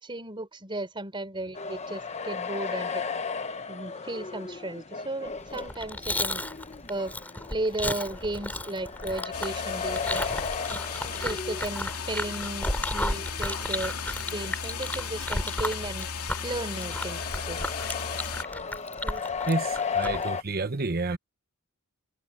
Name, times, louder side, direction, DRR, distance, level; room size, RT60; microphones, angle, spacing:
voice 1, 0.0-3.0 3.7-6.4 6.9-7.1 7.5-10.3 10.7-10.8 11.2-13.9 14.3-16.1 16.4-17.7 19.0-19.2, right 2 dB, 25° right, 4.2 m, -35 dB
sound 1, 1.5-20.4, left 5 dB, 30° left, 1.0 m, -36 dB
Chewing mastication, 5.5-20.3, left 1 dB, 10° left, 3.3 m, -34 dB
sound 2, 9.3-18.4, left 6 dB, 85° left, 2.7 m, -36 dB
voice 2, 19.5-21.2, right 3 dB, 45° right, 1.1 m, -29 dB
head